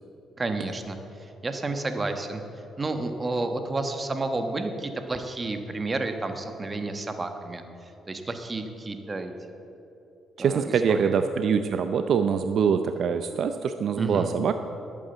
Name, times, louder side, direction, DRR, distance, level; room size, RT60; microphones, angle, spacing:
voice 1, 0.4-2.4 2.8-9.6 10.4-11.1 13.9-14.3, right 2 dB, 25° right, 7 dB, 1.2 m, -31 dB
voice 2, 10.4-14.5, right 6 dB, 65° right, 8 dB, 0.5 m, -24 dB
11.0 x 8.6 x 7.9 m, 2.9 s
cardioid pair, 90°, 0 cm